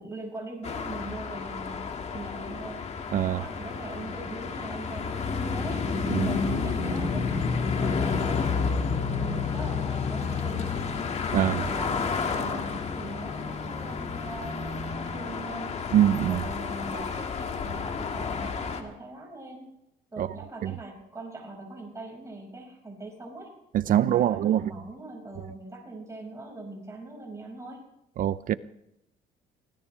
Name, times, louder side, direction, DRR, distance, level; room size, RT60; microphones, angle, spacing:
voice 1, 0.0-2.8 3.2-5.9 6.2-11.1 11.4-15.7 16.3-19.6 20.1-23.5 23.9-27.8, right 2 dB, 15° right, 5.3 m, -41 dB
sound 1, 0.6-18.8, left 5 dB, 40° left, 2.0 m, -30 dB
voice 2, 11.3-11.6 15.9-16.4 20.2-20.3 20.6-20.7 23.7-24.7 28.2-28.5, right 11 dB, 55° right, 0.5 m, -23 dB
24.0 x 17.0 x 3.3 m
cardioid pair, 110°, 17 cm